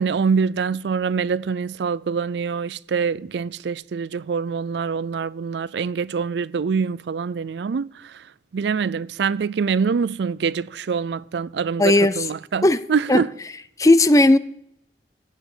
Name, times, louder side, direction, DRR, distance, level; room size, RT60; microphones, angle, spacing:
voice 1, 0.0-8.2 8.5-13.3, right 5 dB, 80° right, 0.4 m, -25 dB
voice 2, 11.8-12.3 12.6-12.8 13.1-13.2 13.8-14.4, left 2 dB, 20° left, 0.5 m, -15 dB
15.0 x 9.4 x 5.0 m
head